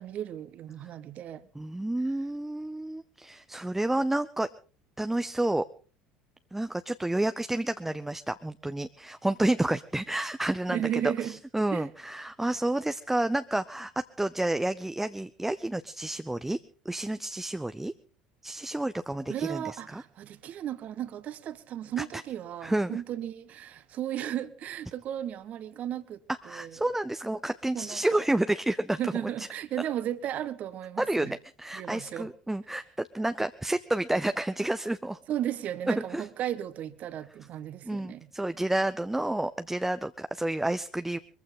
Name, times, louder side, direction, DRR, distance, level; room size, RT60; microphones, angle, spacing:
voice 1, 0.0-1.5 10.7-11.4 11.7-11.9 19.3-26.2 26.5-26.9 27.7-28.2 29.0-31.3 31.7-32.3 35.3-38.3, right 11 dB, 45° right, 1.3 m, -35 dB
voice 2, 1.5-4.5 5.0-5.6 6.5-13.9 14.2-16.6 16.8-17.9 18.4-20.0 22.0-22.2 22.6-23.0 26.4-29.0 29.4-29.5 31.0-35.2 35.9-36.3 37.9-41.2, right 1 dB, 5° right, 0.7 m, -30 dB
23.0 x 15.0 x 3.8 m
figure-of-eight pair, 65°, 3 cm